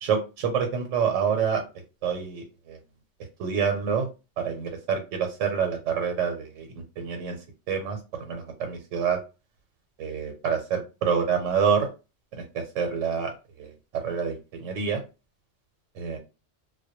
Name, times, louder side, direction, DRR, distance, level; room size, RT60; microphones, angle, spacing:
voice 1, 0.0-1.6 2.0-2.8 3.4-4.1 4.4-6.7 7.0-7.4 7.7-8.0 8.3-9.2 10.0-11.9 12.3-13.3 13.6-13.7 14.0-15.0 16.0-16.2, right 6 dB, 85° right, 4 dB, 1.0 m, -27 dB
2.2 x 2.1 x 2.8 m, 0.29 s
omnidirectional pair, 1.3 m